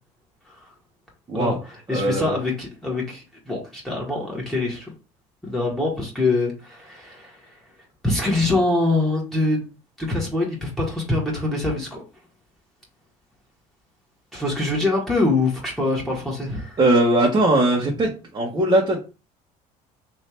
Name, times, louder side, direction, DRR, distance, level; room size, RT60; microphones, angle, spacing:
voice 1, 1.3-4.9 5.4-7.4 8.0-9.7 10.0-12.0 14.3-16.8, left 2 dB, ahead, 1.6 m, -24 dB
voice 2, 1.9-2.3 16.8-19.0, right 1 dB, 25° right, 1.1 m, -20 dB
3.3 x 2.8 x 4.3 m
cardioid pair, 110°, 16 cm